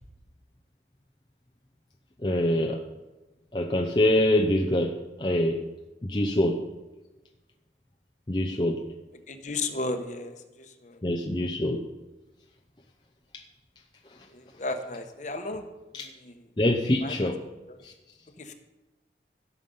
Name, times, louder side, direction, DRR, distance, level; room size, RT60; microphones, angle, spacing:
voice 1, 2.2-2.8 3.5-5.7 6.0-6.6 8.3-8.8 11.0-11.8 15.9-16.1 16.6-17.4 17.8-17.9, left 1 dB, 25° left, 1 dB, 0.7 m, -25 dB
voice 2, 9.3-11.0 14.3-15.7 16.0-16.3 17.0-17.3 17.7-17.8 18.4-18.5, left 2 dB, 45° left, 7 dB, 1.1 m, -34 dB
16.5 x 7.2 x 5.5 m, 1.1 s
head